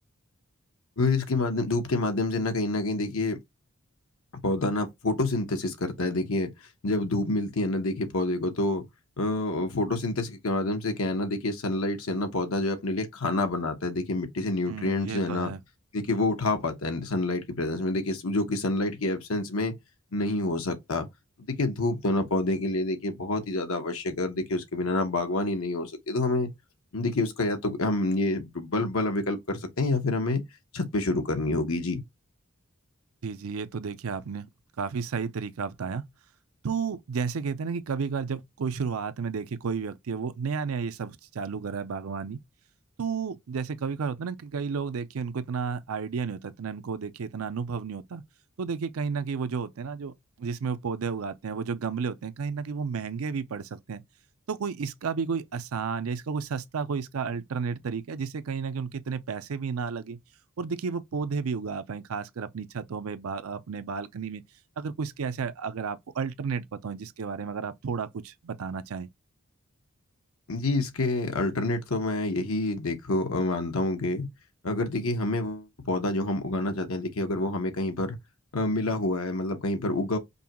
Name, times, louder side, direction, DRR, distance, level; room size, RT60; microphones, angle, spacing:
voice 1, 1.0-3.4 4.4-6.5 6.8-8.8 9.2-15.5 15.9-19.8 20.1-21.1 21.5-26.5 26.9-30.4 30.7-32.0 70.5-74.3 74.6-78.2 78.5-80.2, left 2 dB, 85° left, 1.0 m, -28 dB
voice 2, 14.7-15.6 33.2-34.5 34.8-36.0 36.6-42.4 43.0-48.2 48.6-54.0 54.5-60.2 60.6-64.4 64.8-69.1, right 5 dB, 85° right, 0.5 m, -32 dB
5.3 x 2.3 x 2.9 m
head